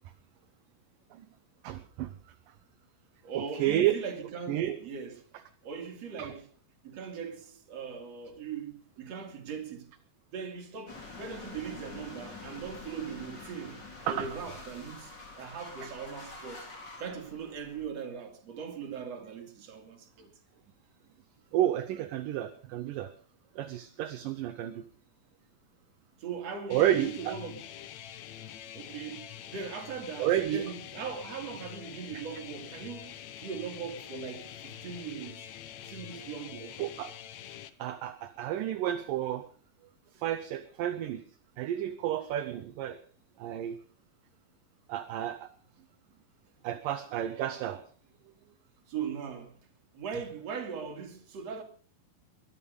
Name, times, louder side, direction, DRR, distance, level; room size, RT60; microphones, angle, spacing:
voice 1, 1.6-2.1 3.3-4.0 4.5-4.8 6.2-6.3 14.1-14.3 21.5-23.1 23.6-24.8 26.7-27.4 30.2-30.7 36.8-37.1 37.8-39.5 40.1-41.2 41.6-43.0 43.4-43.8 44.9-45.5 46.6-47.8, right 12 dB, 75° right, 2.4 m, -31 dB
voice 2, 3.2-5.2 5.6-6.5 6.8-9.9 10.3-16.7 17.0-20.3 26.2-27.6 28.7-35.5 35.8-36.9 48.9-49.6 49.9-51.6, right 6 dB, 45° right, 3.5 m, -40 dB
sound 1, 10.9-17.8, left 3 dB, 30° left, 3.7 m, -46 dB
sound 2, 26.7-37.7, left 11 dB, 70° left, 1.8 m, -45 dB
22.5 x 11.0 x 5.3 m
omnidirectional pair, 4.2 m